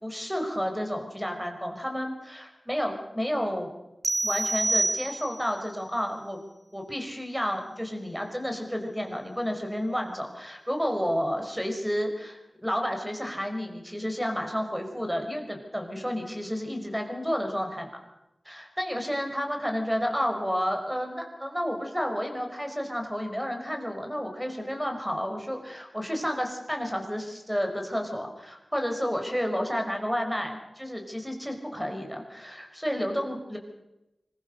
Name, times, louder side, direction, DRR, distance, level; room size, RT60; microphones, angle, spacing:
voice 1, 0.0-3.7 4.2-6.4 6.7-17.9 18.5-33.6, equal, 5° right, 3 dB, 5.3 m, -31 dB
sound 1, 4.0-5.6, right 2 dB, 45° right, 1.0 m, -27 dB
25.5 x 22.0 x 6.7 m, 0.96 s
wide cardioid pair, 65°, 0 cm